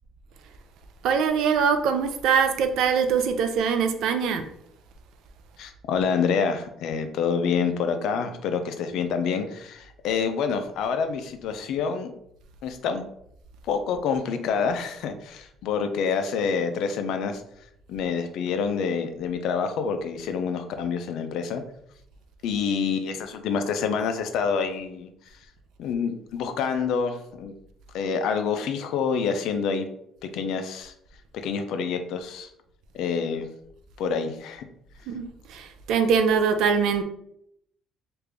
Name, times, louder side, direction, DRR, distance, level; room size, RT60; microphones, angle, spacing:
voice 1, 1.0-4.5 35.1-37.0, right 6 dB, 70° right, 8 dB, 0.4 m, -23 dB
voice 2, 5.6-12.1 12.6-13.0 13.6-17.4 17.9-21.6 22.4-25.1 25.8-27.6 27.9-29.9 30.2-30.9 31.3-32.5 32.9-33.5 34.0-34.6, left 6 dB, 70° left, 7 dB, 0.4 m, -27 dB
3.2 x 2.5 x 3.4 m, 0.74 s
cardioid pair, 115°, 0 cm